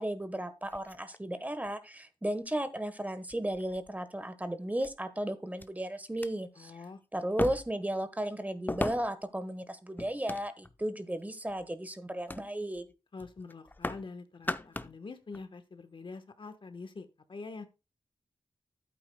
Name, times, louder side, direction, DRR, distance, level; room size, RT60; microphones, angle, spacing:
voice 1, 0.0-6.8 7.1-12.9, right 1 dB, 15° right, 11 dB, 1.1 m, -34 dB
sound 1, 0.6-1.7 2.5-2.6 3.3-3.9 4.8-4.9 5.6-5.7 6.1-6.3 7.4-7.9 8.7-9.3 10.0-10.8 11.4-11.7 12.3-12.5 12.8-12.9 13.2-14.1 14.3-15.0 15.3-15.4, left 2 dB, 20° left, 0.6 m, -38 dB
voice 2, 6.6-7.0 13.1-17.7, left 4 dB, 55° left, 9 dB, 1.1 m, -45 dB
11.5 x 8.7 x 2.2 m, 0.29 s
cardioid pair, 50°, 10 cm